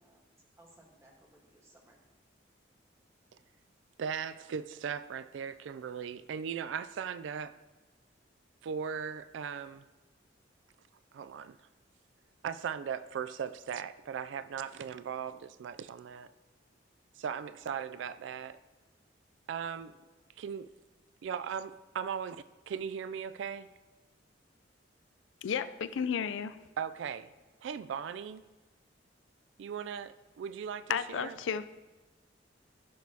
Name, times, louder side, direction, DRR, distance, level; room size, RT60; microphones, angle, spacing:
voice 1, 0.0-2.0, right 1 dB, 15° right, 1.3 m, -61 dB
voice 2, 4.0-7.5 8.6-9.9 11.1-11.6 12.4-16.3 17.2-18.6 19.5-19.9 20.4-20.7 21.2-23.7 26.8-27.3 27.6-28.5 29.6-31.4, right 7 dB, 80° right, 0.3 m, -38 dB
voice 3, 25.4-26.6 30.9-31.6, left 7 dB, 90° left, 0.4 m, -33 dB
15.0 x 6.2 x 2.8 m
head